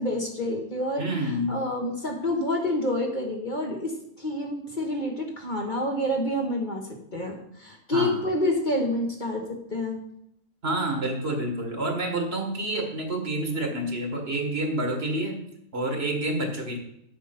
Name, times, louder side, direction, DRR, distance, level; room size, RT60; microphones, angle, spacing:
voice 1, 0.0-1.0 1.5-6.9 7.1-10.0, left 1 dB, 35° left, 0 dB, 1.5 m, -28 dB
voice 2, 1.0-1.7 7.9-8.2 10.6-15.4 15.7-16.8, right 1 dB, 45° right, 3 dB, 1.9 m, -28 dB
7.8 x 7.2 x 5.9 m, 0.77 s
omnidirectional pair, 1.4 m